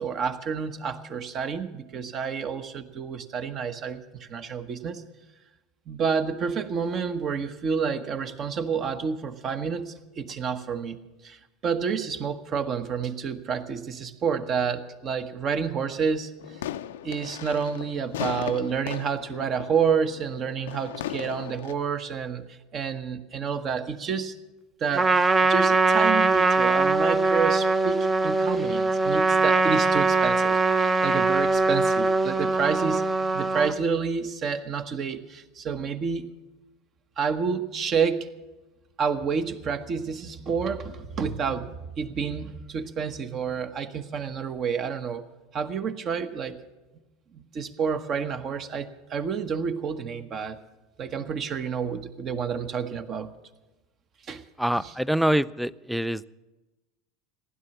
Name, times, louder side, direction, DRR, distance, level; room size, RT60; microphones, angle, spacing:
voice 1, 0.0-5.0 5.9-11.0 11.2-16.6 17.0-24.4 24.8-25.1 25.4-33.0 33.3-36.3 37.2-38.3 39.0-41.7 42.0-45.2 45.5-46.6 47.3-50.6 51.0-53.3 54.2-54.4 54.8-54.9, right 6 dB, 40° right, 9 dB, 1.1 m, -29 dB
sound 1, 16.4-21.7, left 11 dB, 80° left, 0.5 m, -37 dB
Trumpet, 24.9-33.7, right 3 dB, 20° right, 0.7 m, -22 dB
voice 2, 54.6-56.2, equal, ahead, 19 dB, 0.4 m, -25 dB
15.5 x 11.0 x 7.0 m, 1.1 s
hypercardioid pair, 85°, 0 cm